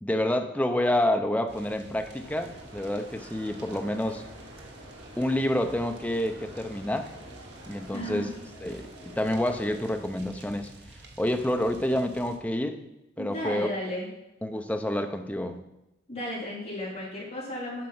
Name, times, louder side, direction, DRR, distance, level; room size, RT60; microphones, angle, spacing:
voice 1, 0.0-4.2 5.2-7.1 7.7-8.3 8.6-10.7 11.2-12.8 13.2-13.7 14.4-15.6, left 1 dB, 5° left, 6 dB, 0.5 m, -28 dB
sound 1, 1.5-12.4, right 2 dB, 55° right, 1.1 m, -50 dB
sound 2, 2.1-9.9, right 1 dB, 85° right, 1.9 m, -48 dB
voice 2, 7.9-8.3 13.2-14.1 16.1-17.9, left 1 dB, 30° left, -8 dB, 3.4 m, -34 dB
7.6 x 5.4 x 5.5 m, 0.92 s
head